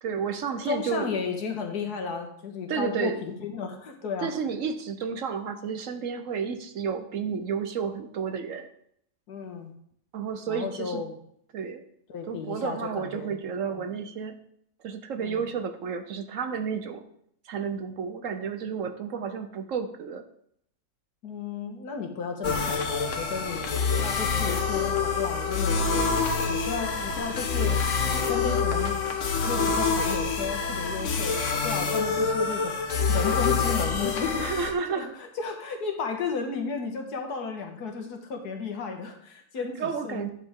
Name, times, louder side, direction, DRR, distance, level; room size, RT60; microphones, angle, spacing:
voice 1, 0.0-1.2 2.7-3.2 4.2-8.7 10.1-11.0 11.5-11.8 12.3-14.3 14.8-17.0 17.4-20.2 34.4-35.1 39.8-40.3, right 6 dB, 60° right, 8 dB, 1.0 m, -31 dB
voice 2, 0.5-4.3 9.3-9.7 10.5-11.2 12.1-13.4 13.7-13.9 15.2-15.4 21.2-26.1 26.5-29.0 29.5-40.3, left 5 dB, 85° left, 4 dB, 1.8 m, -34 dB
sound 1, 22.4-34.7, left 5 dB, 55° left, 1.2 m, -26 dB
11.0 x 6.7 x 3.6 m, 0.69 s
omnidirectional pair, 1.6 m